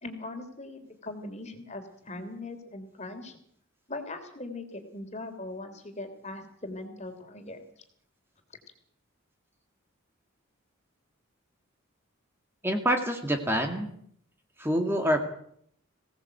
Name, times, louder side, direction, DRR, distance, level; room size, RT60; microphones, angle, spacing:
voice 1, 0.0-3.4 3.9-7.7, left 2 dB, 35° left, 6 dB, 3.2 m, -40 dB
voice 2, 12.6-13.9 14.6-15.2, equal, 10° right, 4 dB, 2.0 m, -26 dB
21.5 x 17.5 x 7.9 m, 0.67 s
head